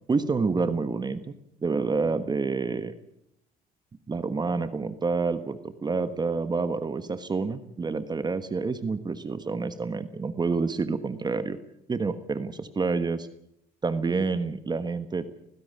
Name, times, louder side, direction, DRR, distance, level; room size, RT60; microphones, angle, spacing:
voice 1, 0.1-1.2 1.6-2.9 4.1-11.6 11.9-13.3 13.8-15.2, right 4 dB, 25° right, 12 dB, 1.3 m, -28 dB
19.0 x 16.0 x 9.5 m, 0.76 s
cardioid pair, 110°, 17 cm